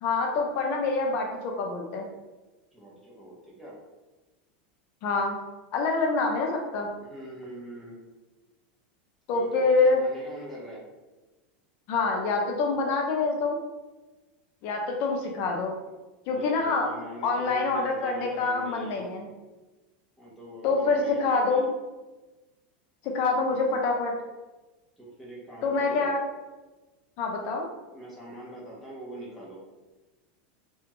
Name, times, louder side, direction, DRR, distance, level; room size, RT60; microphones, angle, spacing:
voice 1, 0.0-2.1 5.0-5.4 5.7-6.9 9.3-10.0 11.9-13.6 14.6-15.7 16.3-16.9 17.2-19.3 20.6-21.6 23.0-24.1 25.6-26.2 27.2-27.7, left 3 dB, 40° left, 1 dB, 0.4 m, -26 dB
voice 2, 2.7-3.8 7.0-8.0 9.3-10.8 16.2-19.1 20.2-21.7 23.5-23.7 25.0-26.1 27.9-29.6, right 1 dB, ahead, -6 dB, 0.7 m, -43 dB
2.8 x 2.3 x 2.9 m, 1.2 s
supercardioid pair, 160°, 5 cm